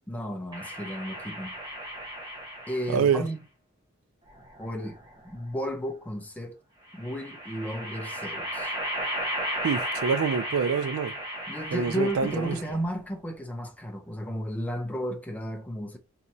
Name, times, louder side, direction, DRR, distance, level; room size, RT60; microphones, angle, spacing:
voice 1, 0.1-1.5 2.7-3.4 4.6-6.6 6.9-8.8 11.5-16.0, equal, 5° left, 0.5 m, -33 dB
sound 1, 0.5-3.2 4.3-5.3 6.9-12.9, equal, 20° right, 1.1 m, -35 dB
voice 2, 2.9-3.2 9.6-11.1 11.7-12.6, right 6 dB, 75° right, 0.4 m, -26 dB
3.4 x 2.8 x 2.6 m
head